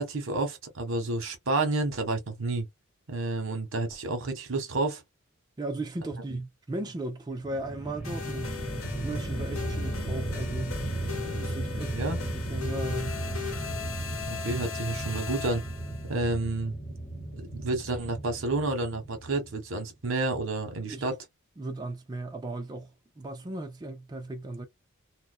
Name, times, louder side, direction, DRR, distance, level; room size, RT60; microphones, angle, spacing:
voice 1, 0.0-2.7 3.1-5.0 11.9-12.2 14.3-15.6 16.1-16.8 17.1-21.1, right 2 dB, 65° right, 1.0 m, -30 dB
voice 2, 5.6-8.6 9.0-10.8 11.3-13.2 20.9-21.1 21.6-24.7, right 2 dB, 20° right, 0.4 m, -36 dB
sound 1, 7.3-19.7, right 1 dB, 30° left, 1.0 m, -35 dB
sound 2, 8.0-16.1, left 7 dB, 85° left, 0.8 m, -39 dB
2.5 x 2.1 x 2.4 m
head